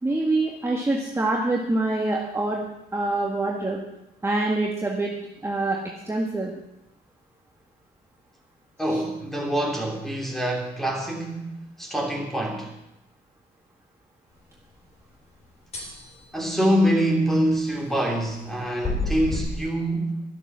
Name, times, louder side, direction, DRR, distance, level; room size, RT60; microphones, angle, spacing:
voice 1, 0.0-2.6 2.9-3.8 4.2-5.1 5.4-5.8 6.1-6.5 8.9-9.0, right 2 dB, 15° right, -2 dB, 1.7 m, -25 dB
voice 2, 8.8-12.7 16.3-20.2, equal, ahead, 0 dB, 3.2 m, -25 dB
sound 1, 15.7-16.1 18.8-19.4, left 2 dB, 40° left, 4.2 m, -28 dB
12.5 x 12.0 x 6.2 m, 0.86 s
wide cardioid pair, 140°, 17 cm